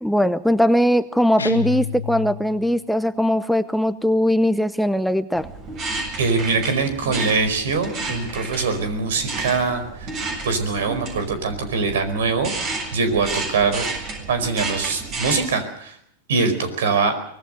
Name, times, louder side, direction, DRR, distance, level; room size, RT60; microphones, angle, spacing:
voice 1, 0.0-5.5, equal, ahead, 12 dB, 0.8 m, -20 dB
sound 1, 1.4-2.8, left 7 dB, 90° left, 2.1 m, -29 dB
sound 2, 5.4-15.5, right 3 dB, 40° right, 7.5 m, -31 dB
voice 2, 6.2-9.8 10.4-13.8 14.3-15.9 16.3-17.1, right 4 dB, 70° right, 10 dB, 4.8 m, -23 dB
24.5 x 19.5 x 6.7 m, 0.69 s
hypercardioid pair, 95°, 0 cm